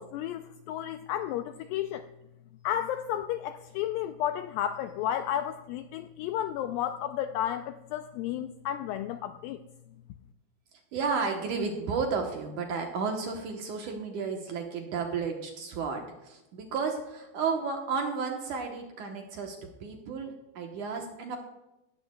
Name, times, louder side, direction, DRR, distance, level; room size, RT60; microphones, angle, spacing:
voice 1, 0.0-2.1 2.6-9.6, left 11 dB, 85° left, 9 dB, 2.0 m, -32 dB
voice 2, 10.9-21.4, right 5 dB, 65° right, 2 dB, 2.1 m, -32 dB
17.5 x 15.5 x 2.3 m, 0.95 s
omnidirectional pair, 4.5 m